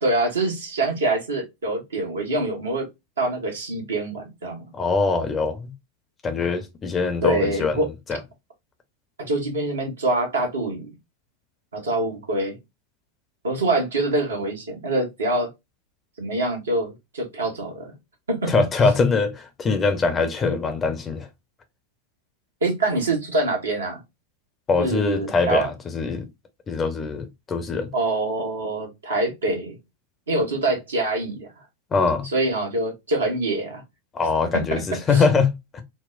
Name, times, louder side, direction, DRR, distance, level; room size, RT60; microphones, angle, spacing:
voice 1, 0.0-2.9 3.2-4.6 7.2-7.9 9.2-10.9 11.7-12.6 13.4-15.5 16.2-17.9 18.3-18.5 22.6-24.0 24.8-25.7 27.9-29.8 30.3-31.5 32.2-33.8 34.5-35.2, right 2 dB, 70° right, 1.3 m, -25 dB
voice 2, 4.7-5.7 6.2-7.8 8.1-8.2 18.5-21.3 24.7-26.2 26.7-27.9 31.9-32.3 34.1-35.8, left 4 dB, 20° left, 0.7 m, -23 dB
4.2 x 2.0 x 2.4 m
figure-of-eight pair, 90°, 0 cm